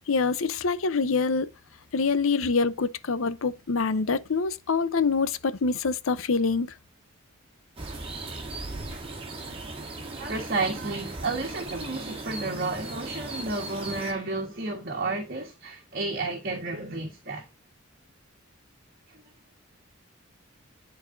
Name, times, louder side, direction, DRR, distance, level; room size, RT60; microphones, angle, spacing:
voice 1, 0.1-1.5 1.9-6.7, left 4 dB, 75° left, 0.6 m, -25 dB
sound 1, 7.8-14.1, right 2 dB, 25° right, 1.7 m, -38 dB
voice 2, 10.2-17.5 19.1-19.2, right 3 dB, 45° right, 1.4 m, -31 dB
10.5 x 4.1 x 2.6 m
head